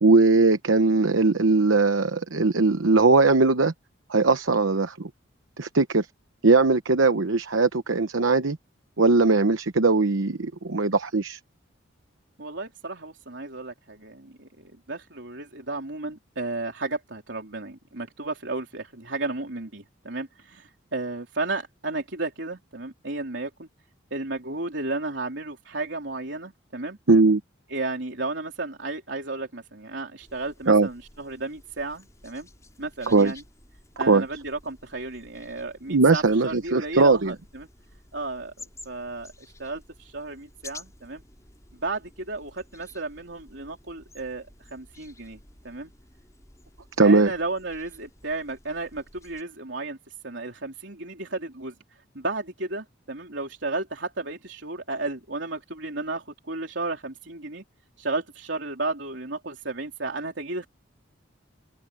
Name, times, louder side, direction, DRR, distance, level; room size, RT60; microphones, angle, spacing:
voice 1, 0.0-3.7 4.1-5.1 5.6-6.1 6.4-8.6 9.0-11.4 27.1-27.4 30.7-30.9 33.1-33.3 34.0-34.2 35.9-37.3 47.0-47.3, right 3 dB, 80° right, 0.9 m, -20 dB
voice 2, 12.4-23.7 24.1-27.0 27.7-32.5 32.8-33.4 34.0-37.7 38.1-38.5 38.9-39.3 39.6-41.2 41.8-45.4 45.6-45.9 47.0-50.0 50.2-51.7 52.1-57.6 58.0-60.7, right 3 dB, 65° right, 3.7 m, -33 dB
sound 1, 30.2-49.4, left 2 dB, 15° left, 5.7 m, -52 dB
head